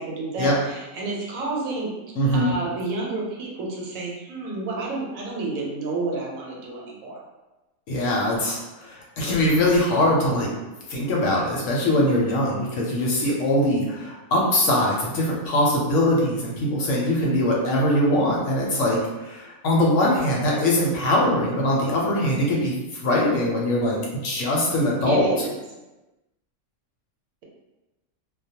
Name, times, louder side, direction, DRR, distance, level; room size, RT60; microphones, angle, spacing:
voice 1, 0.0-1.9 2.3-7.2 25.1-25.5, right 2 dB, 75° right, -3 dB, 1.0 m, -30 dB
voice 2, 2.2-2.5 7.9-10.5 10.9-25.3, left 1 dB, 70° left, -3 dB, 0.9 m, -22 dB
2.2 x 2.2 x 2.7 m, 1.1 s
omnidirectional pair, 1.5 m